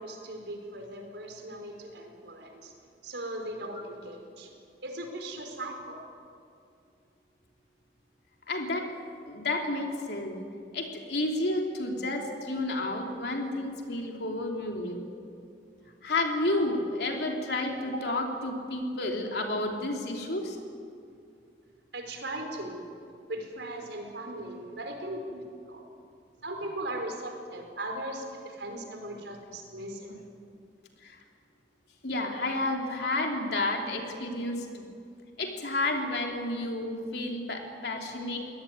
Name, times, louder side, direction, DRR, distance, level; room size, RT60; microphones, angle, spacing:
voice 1, 0.0-2.7 3.0-4.5 4.8-6.0 21.9-22.8 23.3-25.4 25.7-25.8 26.4-30.1, right 1 dB, 80° right, 3 dB, 4.5 m, -38 dB
voice 2, 8.5-8.9 9.3-10.4 10.7-15.0 16.0-20.6 31.0-31.2 32.0-34.9 35.4-38.4, left 2 dB, 65° left, 1 dB, 3.5 m, -31 dB
23.5 x 18.0 x 9.5 m, 2.3 s
head